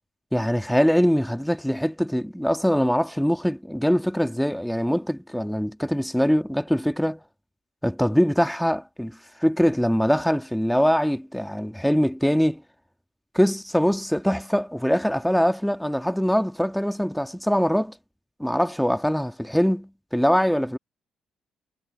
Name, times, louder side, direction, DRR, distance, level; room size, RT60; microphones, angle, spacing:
voice 1, 0.3-7.2 7.8-12.6 13.3-17.9 18.4-20.8, equal, ahead, 1.6 m, -23 dB
cardioid pair, 90°, 0 cm